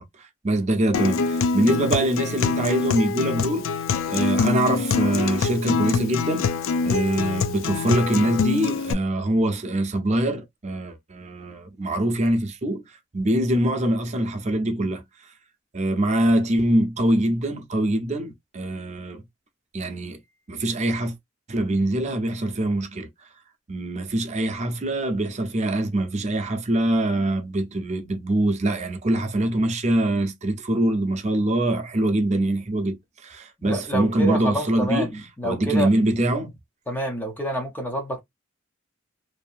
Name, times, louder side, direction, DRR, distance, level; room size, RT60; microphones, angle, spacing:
voice 1, 0.0-3.7 4.1-6.5 6.8-15.3 15.7-19.2 19.7-20.2 20.5-21.1 21.5-23.1 23.7-35.1 35.4-36.6, right 1 dB, 35° right, 0.7 m, -24 dB
Acoustic guitar, 0.9-8.9, left 5 dB, 80° left, 0.4 m, -25 dB
voice 2, 33.6-35.9 36.9-38.2, equal, 10° left, 0.6 m, -28 dB
2.7 x 2.6 x 2.4 m
head